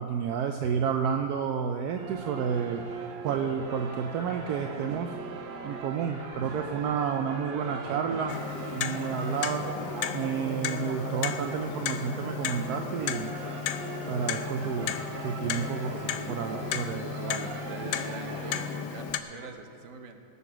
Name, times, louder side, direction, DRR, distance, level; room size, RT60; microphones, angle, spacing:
voice 1, 0.0-2.8 3.2-5.1 5.6-8.4 8.7-9.7 10.1-13.3 14.1-15.0 15.2-17.5, right 7 dB, 70° right, 5 dB, 0.9 m, -31 dB
sound 1, 2.0-18.7, right 6 dB, 90° right, 1.5 m, -40 dB
sound 2, 2.1-19.5, left 2 dB, 45° left, 2.0 m, -48 dB
Clock, 8.3-19.2, left 9 dB, 75° left, 1.1 m, -34 dB
voice 2, 15.5-16.0 17.7-20.2, right 5 dB, 50° right, 5 dB, 1.2 m, -44 dB
16.5 x 7.1 x 6.1 m, 2.5 s
omnidirectional pair, 2.1 m